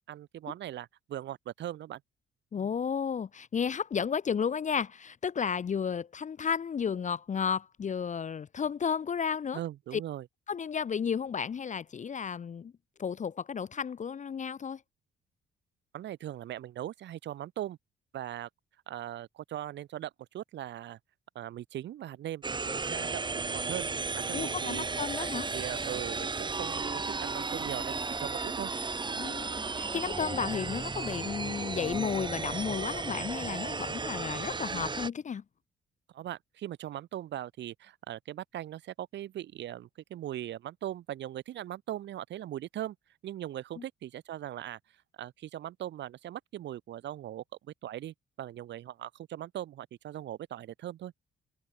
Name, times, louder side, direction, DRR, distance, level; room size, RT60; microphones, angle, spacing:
voice 1, 0.1-2.0 9.5-10.3 15.9-17.8 18.1-18.5 18.9-21.0 21.3-23.9 24.1-24.9 25.2-28.7 36.1-43.0 43.2-44.8 45.2-47.4 47.8-51.1, right 12 dB, 65° right, 0.7 m, -40 dB
voice 2, 2.5-9.6 9.9-10.0 10.5-12.7 13.0-14.8 24.3-25.5 29.2-35.4 43.8-43.9, left 7 dB, 40° left, 0.8 m, -33 dB
sound 1, 22.4-35.1, right 4 dB, 25° right, 1.3 m, -34 dB
cardioid pair, 90°, 20 cm